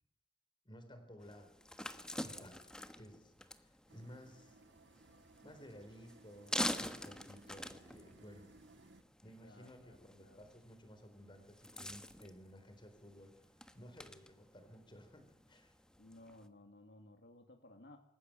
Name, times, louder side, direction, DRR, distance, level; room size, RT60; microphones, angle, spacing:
voice 1, 0.6-1.6 2.2-4.6 5.4-8.5 9.2-15.7, equal, 25° left, 6 dB, 4.4 m, -56 dB
sound 1, 1.2-16.5, left 1 dB, 5° left, 1.2 m, -47 dB
sound 2, 3.9-9.0, right 2 dB, 80° right, 1.5 m, -63 dB
voice 2, 9.4-10.5 16.0-18.0, left 1 dB, 70° left, 6 dB, 2.0 m, -58 dB
25.5 x 14.5 x 9.0 m, 0.79 s
head